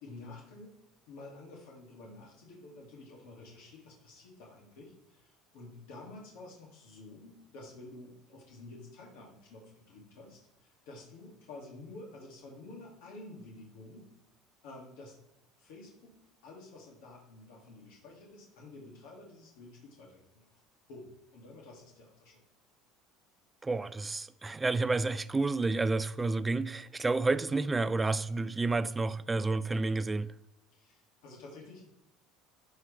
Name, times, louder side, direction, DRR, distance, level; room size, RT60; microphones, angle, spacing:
voice 1, 0.0-0.7 1.1-14.1 14.6-15.2 15.6-16.1 16.4-20.6 20.9-22.4 30.7-31.9, left 2 dB, 85° left, 2.3 m, -50 dB
voice 2, 23.6-30.3, right 3 dB, 15° right, 0.3 m, -30 dB
11.5 x 4.8 x 3.3 m
cardioid pair, 140°, 0 cm